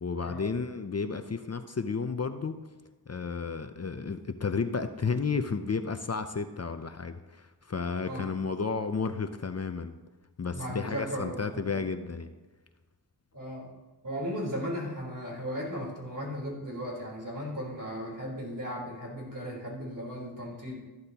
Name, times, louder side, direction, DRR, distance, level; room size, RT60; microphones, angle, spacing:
voice 1, 0.0-2.6 3.1-9.9 10.4-12.3, left 5 dB, 40° left, 9 dB, 0.6 m, -32 dB
voice 2, 10.5-11.8 13.3-13.7 14.0-20.8, equal, 50° right, -3 dB, 4.0 m, -36 dB
14.0 x 11.5 x 3.0 m, 1.2 s
wide cardioid pair, 65°, 41 cm